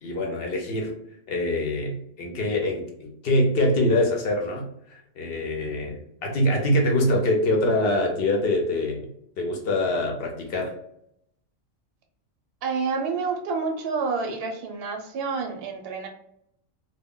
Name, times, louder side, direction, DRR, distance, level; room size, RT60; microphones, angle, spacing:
voice 1, 0.0-0.9 1.3-9.1 9.4-10.7, left 1 dB, 60° left, 1 dB, 0.7 m, -24 dB
voice 2, 12.6-16.1, right 4 dB, 65° right, 3 dB, 0.6 m, -28 dB
2.2 x 2.1 x 3.6 m, 0.72 s
omnidirectional pair, 1.4 m